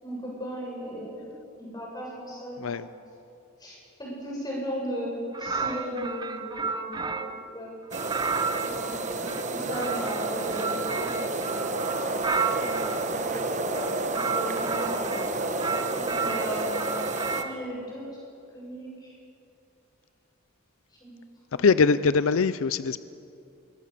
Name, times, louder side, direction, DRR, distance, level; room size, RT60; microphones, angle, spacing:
voice 1, 0.0-2.9 3.6-7.7 8.9-9.0 9.5-11.9 12.1-15.4 15.9-17.0 17.4-18.1 18.5-19.1 21.0-21.2 21.5-21.7, equal, 20° left, -4 dB, 7.9 m, -36 dB
sound 1, 5.3-7.5 7.9-13.0 13.7-15.3 15.6-17.6, right 5 dB, 20° right, 0.7 m, -32 dB
sound 2, 7.9-17.4, right 2 dB, 35° right, 1.3 m, -30 dB
voice 2, 21.6-23.0, left 5 dB, 80° left, 15 dB, 0.5 m, -22 dB
25.0 x 23.0 x 6.9 m, 2.7 s
head